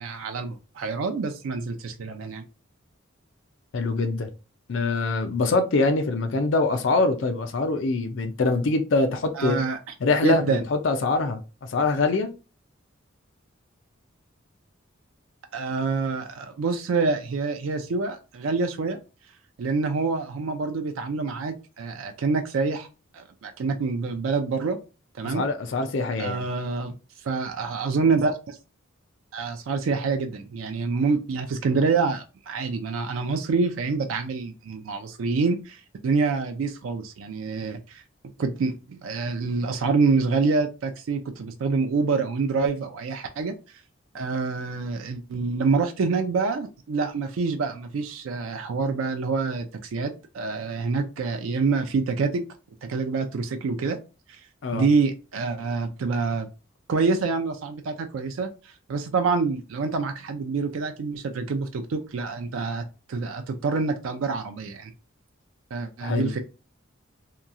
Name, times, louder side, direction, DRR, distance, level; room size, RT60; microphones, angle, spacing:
voice 1, 0.0-2.4 9.3-9.8 10.2-10.6 15.5-19.0 19.6-22.9 23.1-24.8 25.2-25.4 26.2-26.9 27.2-28.6 29.3-38.0 38.4-43.5 44.1-52.4 52.8-54.0 54.3-54.4 54.7-56.5 56.9-64.9 65.7-66.4, right 4 dB, 80° right, 0.4 m, -26 dB
voice 2, 3.7-4.3 4.7-9.6 10.0-12.3 25.2-26.4 54.6-54.8 66.0-66.3, left 3 dB, 65° left, 0.4 m, -24 dB
2.9 x 2.3 x 2.5 m
head